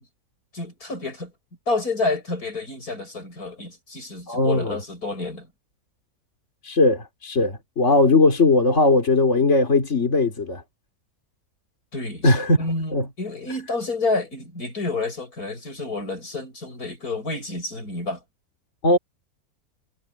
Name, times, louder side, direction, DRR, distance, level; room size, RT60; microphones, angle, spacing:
voice 1, 0.5-1.3 1.7-5.5 11.9-18.2, left 3 dB, 75° left, 8.0 m, -29 dB
voice 2, 4.3-4.8 6.6-10.6 12.2-12.6 12.9-13.1 18.8-19.0, left 2 dB, 50° left, 3.4 m, -19 dB
omnidirectional pair, 1.6 m